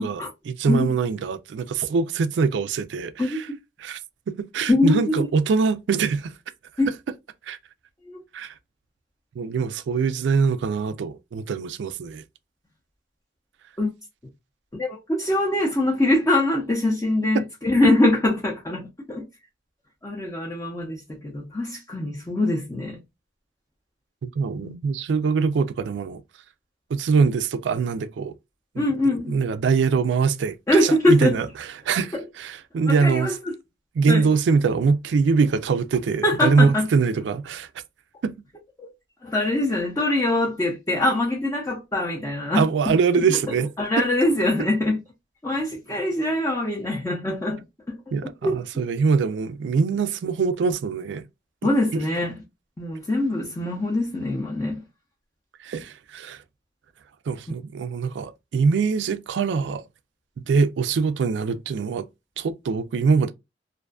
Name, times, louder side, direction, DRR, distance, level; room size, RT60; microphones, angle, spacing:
voice 1, 0.5-3.5 3.8-4.0 4.3-6.3 7.5-7.6 8.3-8.5 9.4-12.2 17.3-17.4 24.2-26.2 26.9-28.3 28.7-33.3 34.0-37.7 38.2-38.3 42.5-43.7 44.0-44.1 48.1-51.2 51.9-52.0 55.6-56.4 57.3-59.8 60.5-62.1 62.4-63.3, right 5 dB, 80° right, 0.3 m, -23 dB
voice 2, 3.2-3.6 4.7-5.2 6.8-6.9 8.1-8.2 13.8-13.9 14.7-19.3 20.0-23.0 24.5-24.8 28.8-29.4 30.7-31.4 32.1-32.2 32.9-33.5 34.1-34.3 36.2-36.9 38.8-38.9 39.2-42.9 43.8-45.0 45.4-48.0 48.2-48.6 51.6-52.4 52.8-54.8 57.5-57.6, left 1 dB, 15° left, 0.5 m, -23 dB
2.5 x 2.3 x 2.2 m
head